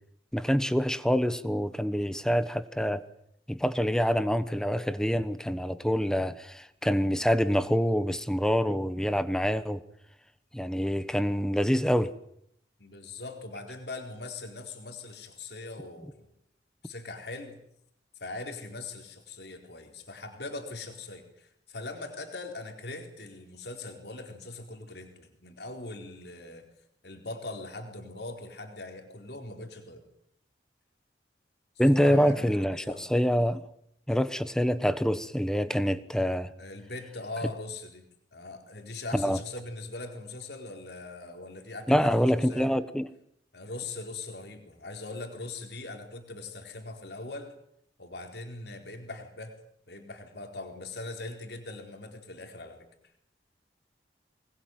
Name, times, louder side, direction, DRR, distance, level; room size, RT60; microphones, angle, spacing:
voice 1, 0.3-3.0 3.5-9.8 10.5-12.1 31.8-33.6 34.1-36.5 39.1-39.4 41.9-43.1, equal, 5° left, 1.2 m, -26 dB
voice 2, 12.8-16.3 16.8-17.6 18.2-26.6 27.0-30.0 31.9-33.0 36.6-38.0 38.3-42.7 43.5-47.5 48.0-49.5 49.9-52.9, left 2 dB, 65° left, 4.3 m, -41 dB
25.0 x 21.0 x 9.4 m
head